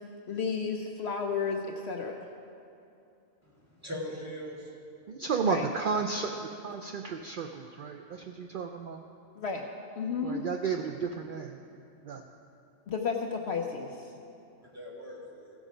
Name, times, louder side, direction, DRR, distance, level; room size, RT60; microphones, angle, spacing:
voice 1, 0.3-2.2 5.4-5.7 9.4-9.7 10.0-10.4 12.9-13.9, left 5 dB, 60° left, 3 dB, 0.8 m, -32 dB
voice 2, 3.6-4.7 14.6-15.5, left 1 dB, 10° right, -6 dB, 2.0 m, -40 dB
voice 3, 5.1-6.4 6.6-9.0 10.2-11.6 12.0-12.2, right 5 dB, 70° right, 4 dB, 0.5 m, -33 dB
16.0 x 6.3 x 5.0 m, 2.6 s
omnidirectional pair, 1.4 m